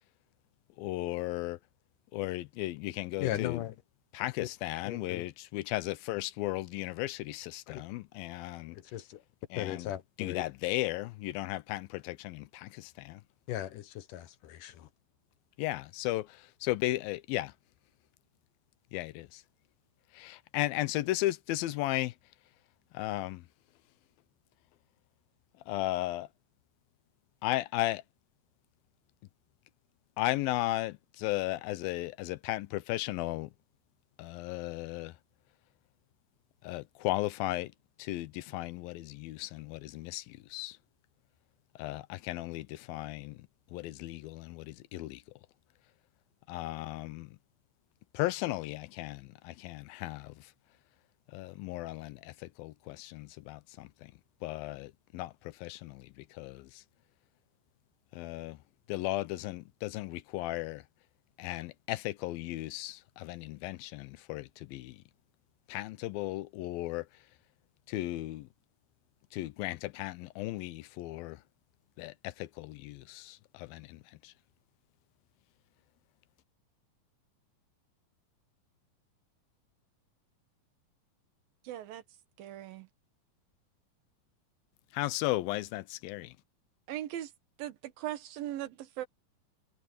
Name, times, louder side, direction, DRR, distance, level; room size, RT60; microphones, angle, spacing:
voice 1, 0.8-1.6 2.1-3.6 4.1-8.8 9.5-9.9 10.2-13.2 15.6-17.5 18.9-19.4 20.1-22.1 22.9-23.5 25.7-26.3 27.4-28.0 30.2-33.5 34.2-35.2 36.6-37.7 38.0-40.8 41.8-45.2 46.5-47.4 48.1-50.5 51.3-54.1 54.4-56.8 58.1-58.6 58.9-60.8 61.4-65.0 65.7-67.2 67.9-68.5 69.3-71.4 72.0-74.3 84.9-86.4, left 17 dB, 90° left, 2.6 m, -35 dB
voice 2, 3.2-3.8 4.4-4.5 4.8-5.2 7.7-7.8 8.7-9.2 9.6-10.4 13.5-14.9, left 13 dB, 70° left, 2.5 m, -37 dB
voice 3, 81.6-82.0 82.4-82.9 86.9-87.3 87.6-89.1, right 13 dB, 80° right, 3.1 m, -39 dB
omnidirectional pair, 4.1 m